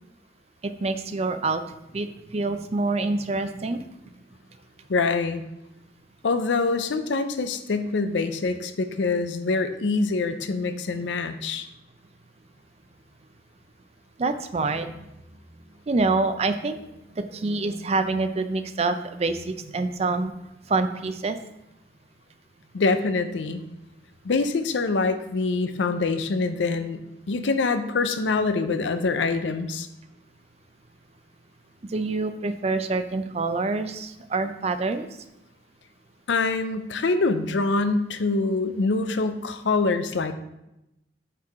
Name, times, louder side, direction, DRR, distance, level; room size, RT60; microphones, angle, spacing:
voice 1, 0.6-1.6 1.9-3.8 14.2-14.9 15.9-16.8 17.2-20.3 20.7-21.4 31.8-35.1, right 3 dB, 35° right, 9 dB, 0.4 m, -26 dB
voice 2, 4.9-5.4 6.2-11.7 22.7-23.6 24.2-27.0 27.3-29.9 36.3-40.3, left 3 dB, 90° left, 10 dB, 0.5 m, -25 dB
5.9 x 4.5 x 4.7 m, 0.88 s
head